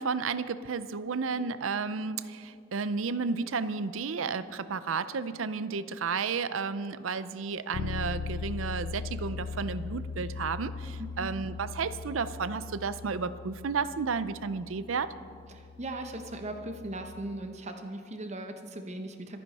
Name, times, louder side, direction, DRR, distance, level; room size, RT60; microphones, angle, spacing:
voice 1, 0.0-15.1, right 5 dB, 85° right, 14 dB, 0.6 m, -32 dB
Bass guitar, 7.7-17.5, left 4 dB, 80° left, 0.3 m, -40 dB
voice 2, 11.0-11.3 15.5-19.4, right 1 dB, 35° right, 5 dB, 0.9 m, -39 dB
24.5 x 10.0 x 4.2 m, 2.3 s
head